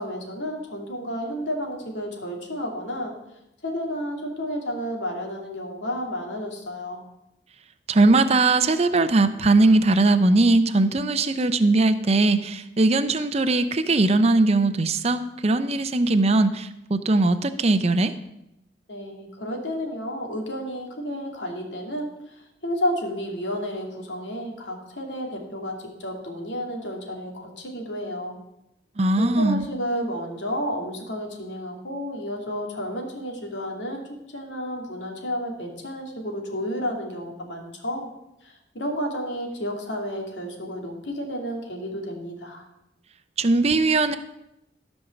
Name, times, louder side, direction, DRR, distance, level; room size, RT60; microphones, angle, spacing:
voice 1, 0.0-3.1 3.6-7.0 18.9-28.4 29.1-38.1 38.4-42.7, equal, 85° left, 1 dB, 2.5 m, -31 dB
voice 2, 7.9-18.1 29.0-29.7 43.4-44.1, right 2 dB, 35° right, 10 dB, 0.6 m, -20 dB
14.0 x 5.4 x 7.1 m, 0.87 s
head